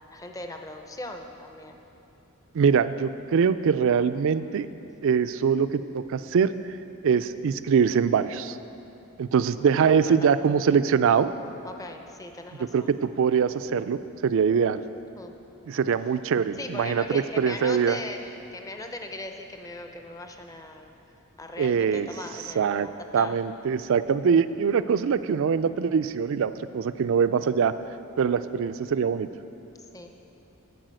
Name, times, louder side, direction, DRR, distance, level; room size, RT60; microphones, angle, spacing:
voice 1, 0.1-1.8 9.6-10.3 11.6-12.9 15.2-15.3 16.5-20.9 21.4-23.3 29.9-30.1, left 2 dB, 15° left, 4 dB, 0.6 m, -39 dB
voice 2, 2.5-4.7 5.0-6.5 7.0-8.6 9.2-11.3 12.7-14.8 15.7-18.0 21.6-22.1 22.6-22.9 23.1-27.7 28.2-29.3, right 6 dB, 60° right, 13 dB, 0.3 m, -23 dB
12.5 x 4.8 x 7.5 m, 2.9 s
head